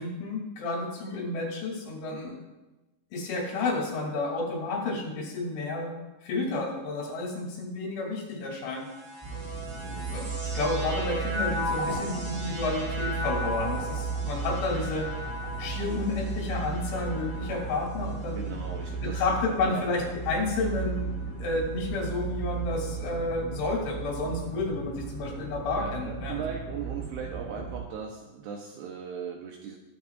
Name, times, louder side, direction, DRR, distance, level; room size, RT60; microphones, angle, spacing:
voice 1, 0.0-2.4 3.1-6.0 6.2-8.9 10.1-10.3 10.5-15.1 15.6-18.5 19.0-26.4, left 3 dB, 75° left, -2 dB, 5.1 m, -31 dB
sound 1, 8.7-20.2 20.9-21.7, left 1 dB, 50° right, 5.3 m, -37 dB
sound 2, 9.2-27.8, right 4 dB, 5° left, 2.3 m, -35 dB
voice 2, 9.8-10.2 18.3-20.1 25.8-29.8, right 6 dB, 80° right, 1 dB, 2.4 m, -38 dB
20.0 x 8.8 x 2.5 m, 1.1 s
omnidirectional pair, 5.5 m